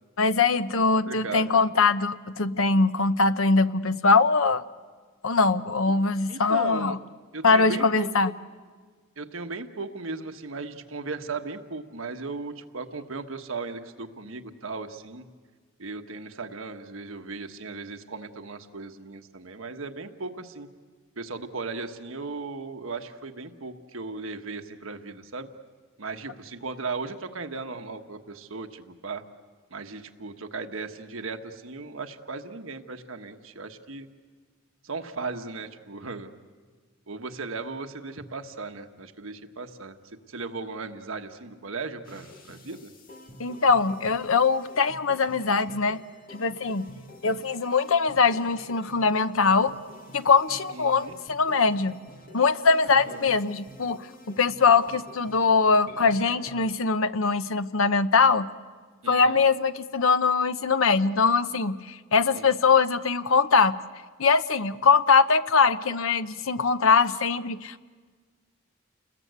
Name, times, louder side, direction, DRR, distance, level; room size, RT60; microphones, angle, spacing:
voice 1, 0.2-4.6 5.2-7.0 7.4-8.3 43.4-46.0 46.3-46.9 47.2-49.7 50.1-52.0 52.3-58.5 59.1-63.8 64.2-67.8, left 4 dB, 80° left, 12 dB, 0.9 m, -22 dB
voice 2, 0.7-1.6 6.3-7.0 7.3-8.3 9.2-15.3 15.8-20.7 21.2-25.5 26.0-29.2 29.7-34.1 34.8-36.3 37.1-40.0 40.3-42.9 50.7-51.2 52.9-53.4 59.0-59.4 62.3-62.5, right 4 dB, 80° right, 6 dB, 1.3 m, -37 dB
sound 1, 42.1-56.7, left 1 dB, 45° left, 1.9 m, -48 dB
29.5 x 21.0 x 8.1 m, 1.5 s
head